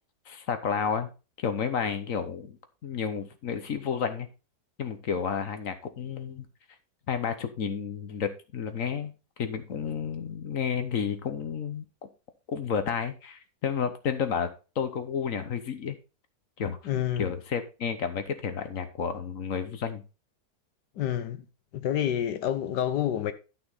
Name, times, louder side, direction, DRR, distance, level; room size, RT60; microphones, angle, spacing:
voice 1, 0.3-1.1 1.4-2.6 2.8-4.3 4.8-6.5 7.1-9.1 9.4-11.8 12.5-16.0 16.6-20.0, left 7 dB, 55° left, 1.4 m, -31 dB
voice 2, 16.8-17.3 21.0-21.4 21.7-23.3, left 10 dB, 80° left, 1.4 m, -28 dB
11.5 x 6.0 x 4.0 m
omnidirectional pair, 1.8 m